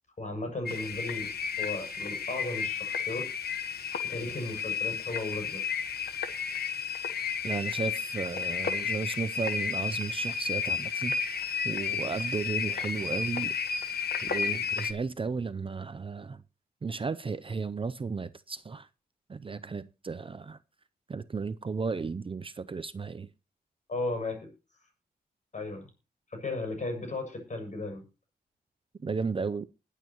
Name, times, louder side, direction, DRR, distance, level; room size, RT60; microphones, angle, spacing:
voice 1, 0.2-1.3 1.6-3.3 4.0-5.7 23.9-24.5 25.5-25.9 26.3-28.0, left 2 dB, 45° left, 7.0 m, -35 dB
sound 1, 0.7-14.9, left 6 dB, 75° left, 1.3 m, -32 dB
voice 2, 7.4-13.6 14.2-16.4 16.8-18.9 19.3-20.6 21.1-23.3 29.0-29.7, right 4 dB, 35° right, 0.5 m, -34 dB
21.5 x 8.4 x 3.0 m
cardioid pair, 85°, 17 cm